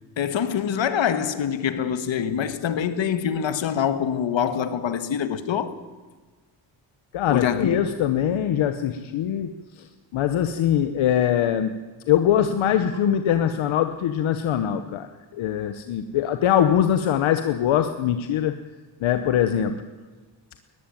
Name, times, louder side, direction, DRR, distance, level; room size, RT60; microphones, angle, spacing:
voice 1, 0.2-5.8 7.3-7.8, left 8 dB, 70° left, 1.7 m, -25 dB
voice 2, 7.1-9.9 10.1-11.8 12.1-18.6 19.0-19.8, left 10 dB, 85° left, 1.1 m, -22 dB
20.0 x 14.5 x 9.2 m
cardioid pair, 80°, 46 cm